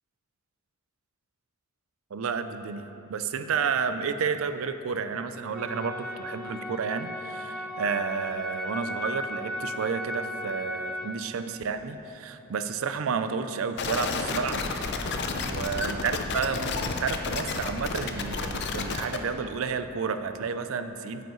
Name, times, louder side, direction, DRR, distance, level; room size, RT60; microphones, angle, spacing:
voice 1, 2.1-14.6 15.0-21.2, right 5 dB, 70° right, 10 dB, 0.4 m, -31 dB
sound 1, 5.5-11.1, left 1 dB, ahead, 0.6 m, -36 dB
sound 2, 13.8-19.2, left 4 dB, 50° left, 0.5 m, -31 dB
9.1 x 7.9 x 3.0 m, 2.9 s
head